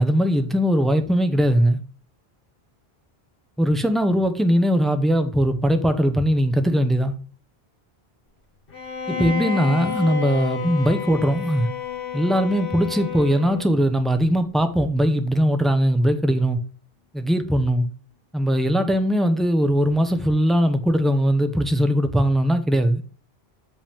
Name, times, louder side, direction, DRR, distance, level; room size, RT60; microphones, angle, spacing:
voice 1, 0.0-1.8 3.6-7.1 9.1-11.7 12.1-16.6 17.1-17.9 18.3-23.0, equal, ahead, 0.5 m, -20 dB
Bowed string instrument, 8.7-13.8, left 6 dB, 60° left, 1.6 m, -31 dB
Harp, 9.1-13.2 13.5-14.1 14.6-14.9, left 12 dB, 45° left, 1.2 m, -40 dB
7.0 x 5.3 x 3.5 m
omnidirectional pair, 1.0 m